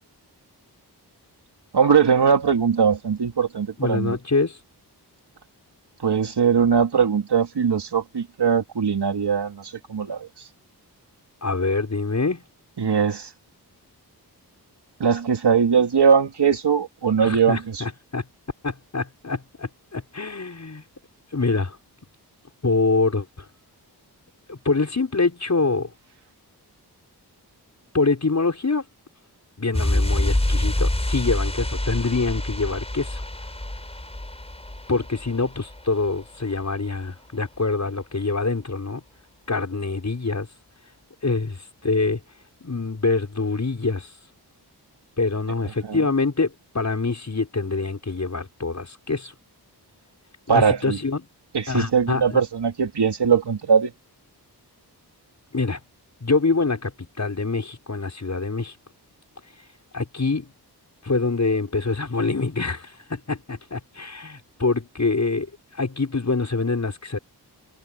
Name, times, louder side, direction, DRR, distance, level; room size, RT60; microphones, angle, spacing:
voice 1, 1.7-4.2 6.0-10.5 12.8-13.3 15.0-17.8 45.8-46.0 50.5-51.0 51.5-53.9, right 6 dB, 80° right, 3.0 m, -20 dB
voice 2, 3.8-4.6 11.4-12.4 17.2-18.3 18.6-20.8 21.3-21.8 22.6-23.5 24.5-25.9 27.9-28.9 29.6-33.2 34.9-39.0 39.5-40.5 41.2-42.2 42.6-44.1 45.2-49.3 50.5-51.3 51.7-52.4 55.5-55.8 56.2-58.7 59.9-60.5 61.0-67.2, left 3 dB, 45° left, 6.5 m, -25 dB
sound 1, 29.7-36.2 36.5-36.6, left 1 dB, 15° left, 5.2 m, -26 dB
wide cardioid pair, 95°, 40 cm